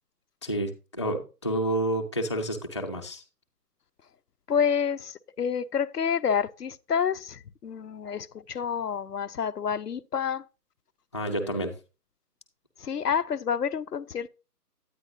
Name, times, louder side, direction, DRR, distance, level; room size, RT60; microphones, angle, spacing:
voice 1, 0.4-3.2 11.1-11.7, right 1 dB, 20° left, 0.7 m, -29 dB
voice 2, 4.5-10.4 11.3-11.6 12.8-14.3, left 7 dB, 70° left, 0.7 m, -29 dB
9.5 x 9.3 x 2.6 m
figure-of-eight pair, 150°, 49 cm